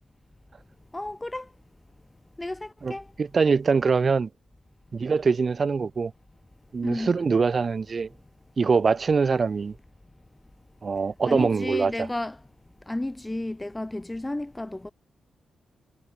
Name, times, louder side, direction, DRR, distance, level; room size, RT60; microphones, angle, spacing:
voice 1, 0.9-1.5 2.4-3.1 6.8-7.1 11.3-12.4 12.9-14.9, left 1 dB, 15° left, 0.7 m, -32 dB
voice 2, 2.8-4.3 4.9-6.1 6.7-8.1 8.6-9.7 10.8-12.1, right 5 dB, 40° right, 0.8 m, -23 dB
cardioid pair, 90°, 0 cm